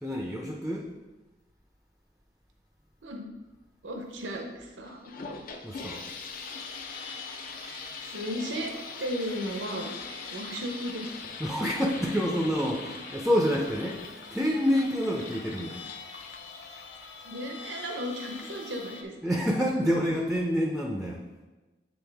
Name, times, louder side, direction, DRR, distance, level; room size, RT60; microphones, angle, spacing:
voice 1, 0.0-0.8 5.6-6.0 11.4-14.0 14.3-15.8 19.2-21.2, equal, ahead, 0 dB, 0.5 m, -27 dB
voice 2, 3.8-5.1 8.1-8.7 9.0-9.9 10.3-11.2 17.2-19.1, equal, 90° right, 2 dB, 0.8 m, -35 dB
sound 1, 4.8-17.4, left 4 dB, 50° left, 0.5 m, -43 dB
sound 2, 5.8-19.0, left 4 dB, 90° left, 0.6 m, -46 dB
7.9 x 3.9 x 3.4 m, 1.2 s
head